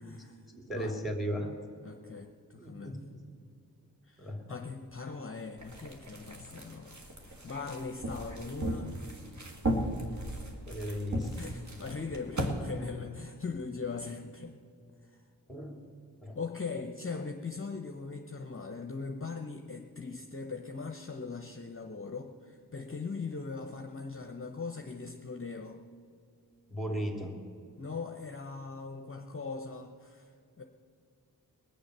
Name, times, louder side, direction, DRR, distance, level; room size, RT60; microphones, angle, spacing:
voice 1, 0.0-0.4 0.7-1.0 1.8-3.0 4.1-9.1 11.4-14.6 15.0-15.2 16.3-25.8 27.8-30.3 30.6-30.7, left 4 dB, 35° left, 5 dB, 0.9 m, -40 dB
voice 2, 0.5-1.5 2.6-3.3 4.2-4.6 10.7-11.4 15.5-15.8 16.2-16.4 26.7-27.4, equal, ahead, 3 dB, 3.0 m, -36 dB
sound 1, 5.6-12.5, right 1 dB, 45° right, 2.1 m, -37 dB
21.0 x 7.1 x 6.7 m, 2.3 s
cardioid pair, 50°, 39 cm